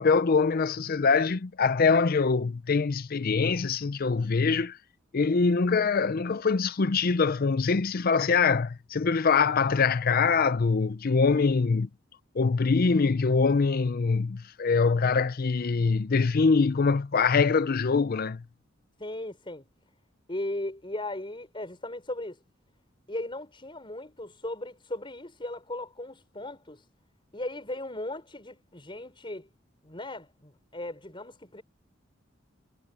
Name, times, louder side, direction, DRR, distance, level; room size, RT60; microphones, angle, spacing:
voice 1, 0.0-4.8 5.1-11.9 12.3-18.4, left 4 dB, 45° left, 0.5 m, -24 dB
voice 2, 19.0-19.6 20.3-22.4 23.1-26.9 27.3-29.5 29.8-31.6, left 1 dB, 25° left, 5.3 m, -37 dB
head